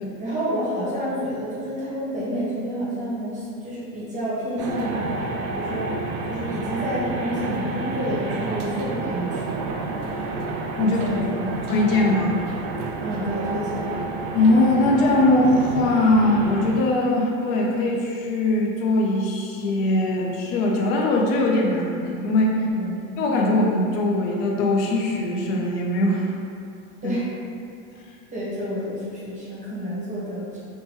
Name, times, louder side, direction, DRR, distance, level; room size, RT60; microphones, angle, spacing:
voice 1, 0.2-5.1 5.5-9.6 10.8-11.6 13.0-13.9 22.5-23.0 27.0-27.3 28.3-30.6, equal, 15° right, -9 dB, 0.8 m, -29 dB
sound 1, 4.6-16.8, right 3 dB, 55° right, 0.5 m, -30 dB
voice 2, 11.6-12.4 14.3-22.6 23.2-26.3 27.0-27.1, left 2 dB, 60° left, -1 dB, 0.6 m, -21 dB
2.9 x 2.2 x 2.9 m, 2.5 s
supercardioid pair, 125°, 43 cm